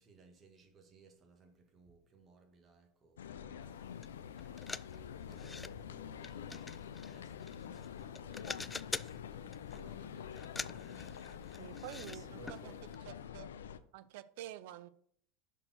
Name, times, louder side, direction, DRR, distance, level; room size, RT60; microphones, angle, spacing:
voice 1, 0.0-3.9 4.4-12.9, right 4 dB, 35° right, 1.8 m, -61 dB
sound 1, 3.2-13.8, left 8 dB, 85° left, 0.5 m, -47 dB
sound 2, 4.0-4.1 4.4-5.7 6.2-7.9 8.2-9.2 9.5-9.9 10.3-12.2 12.5-12.6 12.9-13.0, left 4 dB, 15° left, 0.3 m, -45 dB
voice 2, 11.6-12.7 13.1-13.5 13.9-14.9, right 14 dB, 70° right, 0.5 m, -48 dB
6.3 x 4.5 x 6.0 m
hypercardioid pair, 95°, 0 cm